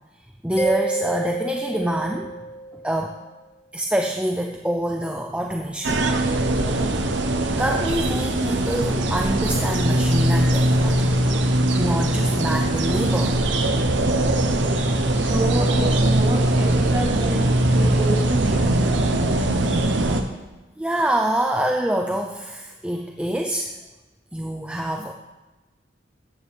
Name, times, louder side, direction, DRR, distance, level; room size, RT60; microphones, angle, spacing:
voice 1, 0.4-2.3 2.8-3.1 3.7-6.1 7.6-11.1 11.7-13.4 20.8-23.7 24.3-25.1, right 1 dB, 5° right, 2 dB, 0.6 m, -25 dB
Mallet percussion, 0.6-3.1, right 3 dB, 15° left, 0.9 m, -28 dB
sound 1, 5.8-20.2, right 1 dB, 85° right, 1.0 m, -21 dB
voice 2, 15.1-17.5 17.7-18.6, right 2 dB, 40° right, -6 dB, 3.7 m, -28 dB
14.0 x 9.1 x 3.5 m, 1.1 s
head